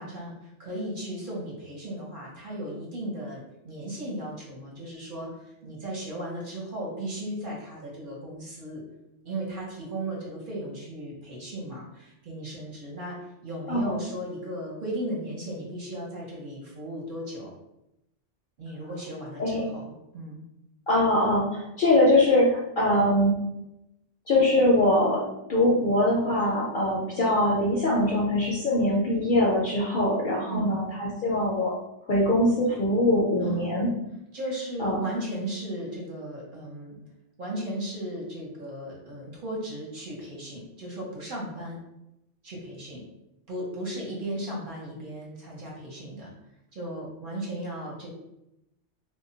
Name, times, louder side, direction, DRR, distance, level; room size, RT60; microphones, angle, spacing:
voice 1, 0.0-8.8 9.2-13.2 13.4-17.5 18.6-20.4 30.5-30.8 33.4-33.7 34.3-37.0 37.4-41.8 42.4-43.0 43.5-46.3 46.7-48.1, right 1 dB, 50° right, -4 dB, 0.8 m, -36 dB
voice 2, 13.7-14.0 19.4-19.6 20.9-23.3 24.3-25.2 25.5-31.7 32.1-33.9 34.8-35.0, left 1 dB, 55° left, -4 dB, 0.6 m, -22 dB
2.2 x 2.1 x 3.8 m, 0.87 s
omnidirectional pair, 1.3 m